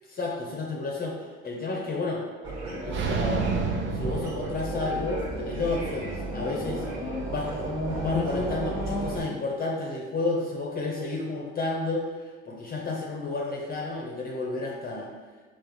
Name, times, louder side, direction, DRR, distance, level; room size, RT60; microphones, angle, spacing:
voice 1, 0.1-2.2 2.8-3.5 3.9-6.8 7.3-15.1, left 3 dB, 30° left, -1 dB, 0.7 m, -31 dB
sound 1, 2.4-9.2, right 1 dB, 60° right, 1.5 m, -32 dB
sound 2, 2.9-5.1, right 4 dB, 40° right, 0.5 m, -30 dB
4.5 x 3.8 x 3.0 m, 1.4 s
cardioid pair, 105°, 29 cm